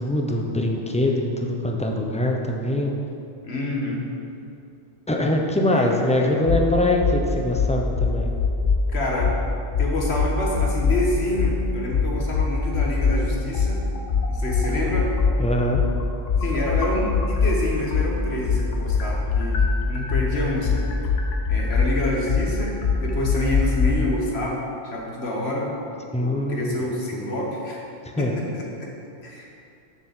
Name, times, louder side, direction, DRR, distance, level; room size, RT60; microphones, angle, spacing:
voice 1, 0.0-2.9 5.1-8.3 15.4-15.8 26.1-26.8 27.1-27.4 28.0-28.3, left 1 dB, 5° left, 1 dB, 0.7 m, -23 dB
voice 2, 3.4-4.0 5.7-6.5 8.9-9.4 9.8-13.8 14.3-15.1 16.4-20.8 21.5-25.7 26.2-27.9 28.2-28.9 29.2-29.5, left 1 dB, 60° left, -2 dB, 1.8 m, -27 dB
sound 1, 6.5-6.6 7.0-7.2 7.5-8.8 9.2-9.4 9.7-11.0 11.4-11.5 11.9-13.2 13.5-17.5 17.9-23.9, left 5 dB, 90° left, 1.3 m, -22 dB
6.9 x 6.3 x 7.6 m, 2.6 s
omnidirectional pair, 1.2 m